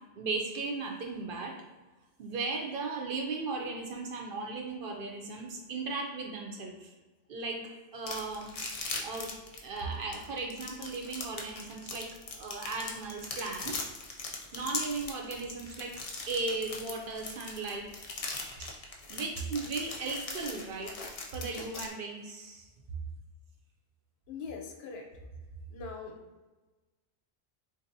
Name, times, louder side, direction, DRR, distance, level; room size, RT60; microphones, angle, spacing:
voice 1, 0.2-1.5 2.2-6.9 7.3-7.6 7.9-8.5 9.0-9.3 9.6-13.9 14.5-15.9 16.3-17.9 18.6-18.7 19.1-20.9 21.3-22.7, right 3 dB, 65° right, 1 dB, 0.7 m, -36 dB
sound 1, 8.1-21.9, left 4 dB, 50° left, 0.4 m, -39 dB
voice 2, 24.3-25.1 25.7-26.2, left 5 dB, 70° left, 2 dB, 0.8 m, -41 dB
3.8 x 2.6 x 2.6 m, 1.2 s
omnidirectional pair, 1.1 m